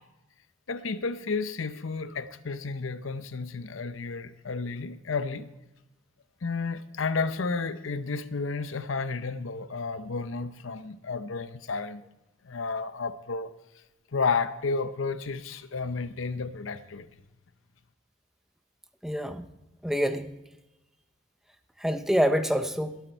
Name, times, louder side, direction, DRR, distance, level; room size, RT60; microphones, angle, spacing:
voice 1, 0.7-5.5 6.4-12.0 12.4-13.5 14.1-17.1, left 4 dB, 85° left, 0.7 m, -32 dB
voice 2, 19.0-19.4 19.8-20.3 21.8-23.0, equal, ahead, 0.7 m, -26 dB
20.5 x 8.2 x 4.6 m
head